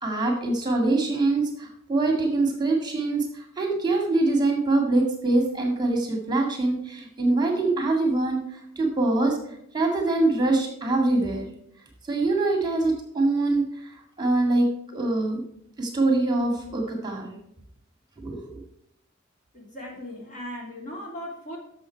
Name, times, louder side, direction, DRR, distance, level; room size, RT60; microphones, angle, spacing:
voice 1, 0.0-8.4 8.8-9.4 9.7-11.5 12.1-13.7 14.2-15.4 15.8-17.3 18.2-18.6, right 2 dB, 20° right, 2 dB, 2.0 m, -24 dB
voice 2, 19.5-21.6, equal, 40° left, -1 dB, 3.2 m, -38 dB
11.0 x 7.1 x 4.5 m, 0.73 s
head